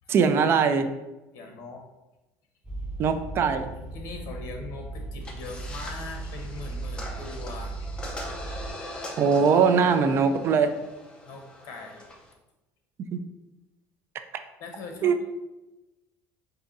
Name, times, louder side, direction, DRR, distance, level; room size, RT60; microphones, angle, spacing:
voice 1, 0.1-0.9 3.0-3.7 9.2-10.7 13.1-13.2 15.0-15.2, right 6 dB, 40° right, 8 dB, 0.4 m, -21 dB
voice 2, 1.3-1.8 3.0-3.1 3.9-8.0 11.2-12.1 14.6-15.2, left 3 dB, 60° left, 2 dB, 1.1 m, -41 dB
sound 1, 2.6-8.7, right 2 dB, 15° right, 0.9 m, -37 dB
sound 2, 5.2-12.3, left 1 dB, 15° left, 0.7 m, -42 dB
4.6 x 2.7 x 4.0 m, 1.0 s
cardioid pair, 150°, 6 cm